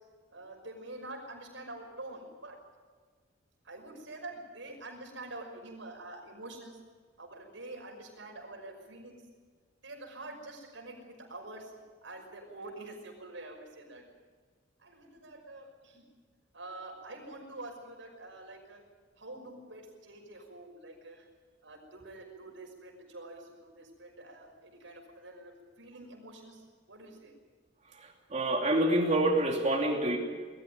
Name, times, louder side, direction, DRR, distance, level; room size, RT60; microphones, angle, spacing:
voice 1, 0.3-2.6 3.6-6.8 7.2-9.2 9.8-11.7 12.0-14.0 14.8-16.1 16.5-18.8 19.2-21.2 21.6-27.3, right 2 dB, 85° right, 1 dB, 5.9 m, -46 dB
voice 2, 28.0-30.2, right 1 dB, 40° right, 0 dB, 2.9 m, -27 dB
21.5 x 14.5 x 9.5 m, 1.5 s
head